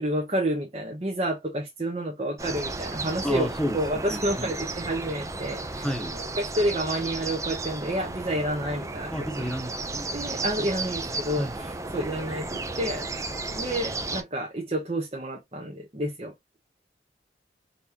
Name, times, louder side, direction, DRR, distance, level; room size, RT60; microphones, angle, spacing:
voice 1, 0.0-9.1 9.4-9.5 10.1-16.3, right 1 dB, 35° right, 0.9 m, -30 dB
sound 1, 2.4-14.2, right 3 dB, 20° right, 0.5 m, -34 dB
voice 2, 3.2-4.5 5.8-6.1 9.1-10.1 11.4-11.6, equal, 5° left, 1.1 m, -31 dB
4.1 x 3.4 x 2.8 m
head